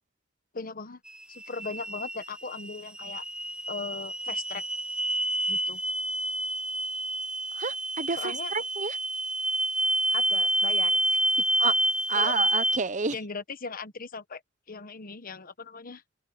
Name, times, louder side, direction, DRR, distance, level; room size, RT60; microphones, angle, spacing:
voice 1, 0.5-1.0 1.3-3.2 3.7-4.6 5.5-5.8 8.2-8.5 10.1-11.2 12.1-12.4 13.1-14.4 14.7-16.0, left 4 dB, 45° left, 1.2 m, -38 dB
sound 1, 1.1-12.8, right 1 dB, 5° right, 0.5 m, -28 dB
voice 2, 7.6-9.0 11.6-11.7 12.1-13.2, right 5 dB, 40° right, 0.9 m, -30 dB
open air
head